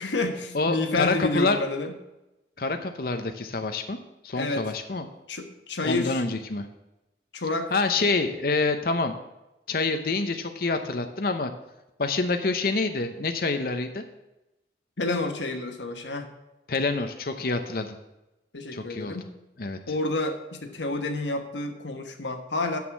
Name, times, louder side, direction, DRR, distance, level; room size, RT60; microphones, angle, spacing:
voice 1, 0.0-1.9 4.3-4.7 5.3-6.2 7.3-7.7 15.0-16.3 18.5-19.3 19.9-22.8, left 2 dB, 90° left, 6 dB, 1.3 m, -29 dB
voice 2, 0.5-1.6 2.6-4.0 4.2-5.1 5.8-6.7 7.7-9.1 9.7-11.5 12.0-14.0 16.7-18.0 18.7-19.2 19.6-19.8, left 3 dB, 55° left, 7 dB, 0.7 m, -27 dB
9.5 x 6.3 x 7.2 m, 0.97 s
head